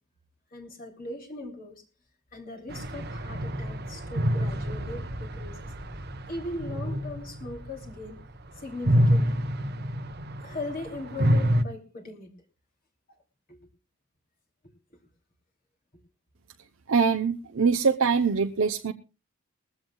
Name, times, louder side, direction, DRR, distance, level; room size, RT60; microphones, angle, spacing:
voice 1, 0.5-1.8 2.3-5.7 6.3-8.2 8.6-9.4 10.4-12.3 13.5-13.6, left 2 dB, 40° left, 1 dB, 2.9 m, -39 dB
sound 1, 2.7-8.3 8.7-11.6, equal, 45° right, 1.1 m, -27 dB
voice 2, 16.9-18.9, right 5 dB, 65° right, 5 dB, 0.7 m, -23 dB
21.0 x 15.5 x 2.3 m, 0.32 s
head